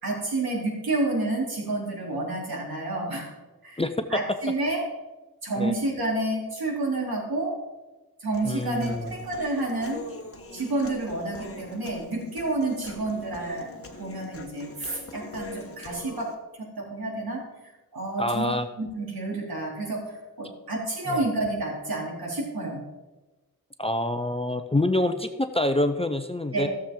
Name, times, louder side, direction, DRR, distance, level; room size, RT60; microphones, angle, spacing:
voice 1, 0.0-3.3 3.6-3.8 4.1-4.8 5.4-7.6 8.2-10.0 10.5-13.7 14.0-16.3 16.6-17.4 17.9-18.5 18.8-22.8 26.5-26.6, right 2 dB, 70° right, -2 dB, 3.4 m, -29 dB
Human voice, 8.3-16.3, left 3 dB, 35° left, 1.2 m, -42 dB
voice 2, 8.4-9.1 18.2-18.7 21.1-21.2 23.8-26.7, left 1 dB, 15° left, 8 dB, 0.5 m, -26 dB
15.5 x 7.2 x 3.7 m, 1.1 s
wide cardioid pair, 110°, 38 cm